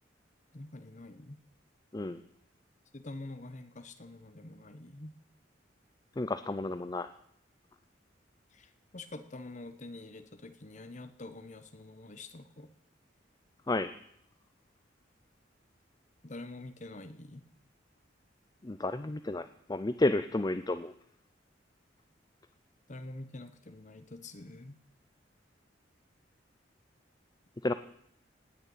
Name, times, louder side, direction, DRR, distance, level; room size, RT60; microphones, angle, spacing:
voice 1, 0.5-1.4 2.9-5.1 8.5-12.7 16.2-17.4 22.9-24.8, left 2 dB, 40° left, 10 dB, 1.1 m, -46 dB
voice 2, 6.2-7.1 13.7-13.9 18.6-20.9 27.6-27.7, left 2 dB, 20° left, 11 dB, 0.5 m, -31 dB
18.0 x 6.7 x 9.1 m, 0.69 s
head